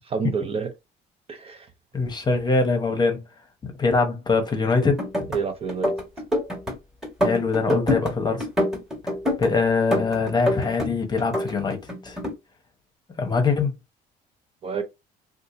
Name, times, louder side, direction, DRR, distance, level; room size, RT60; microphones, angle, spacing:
voice 1, 0.1-0.7 1.3-1.7 5.3-5.9 14.6-14.8, right 5 dB, 35° right, 0.5 m, -28 dB
voice 2, 1.9-3.2 3.6-5.3 7.2-8.5 9.4-11.8 12.0-12.2 13.2-13.7, left 4 dB, 25° left, 0.9 m, -23 dB
sound 1, 4.8-5.4 5.7-6.7 7.0-8.1 8.4-9.5 9.9-10.9 11.2-12.3, left 1 dB, 5° right, 1.5 m, -25 dB
2.7 x 2.5 x 3.8 m
cardioid pair, 110°, 17 cm